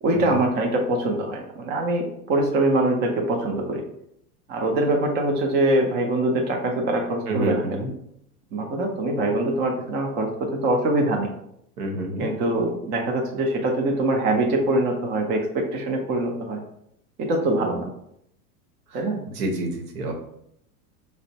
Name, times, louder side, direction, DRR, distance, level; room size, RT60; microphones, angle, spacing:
voice 1, 0.0-3.8 4.5-7.8 8.5-11.3 12.2-16.6 17.2-17.9 18.9-19.2, right 2 dB, 25° right, 2 dB, 0.4 m, -23 dB
voice 2, 7.3-7.9 11.8-12.3 18.9-19.0 19.4-20.1, right 1 dB, 85° right, 2 dB, 0.9 m, -28 dB
4.1 x 2.1 x 2.7 m, 0.75 s
hypercardioid pair, 115°, 45 cm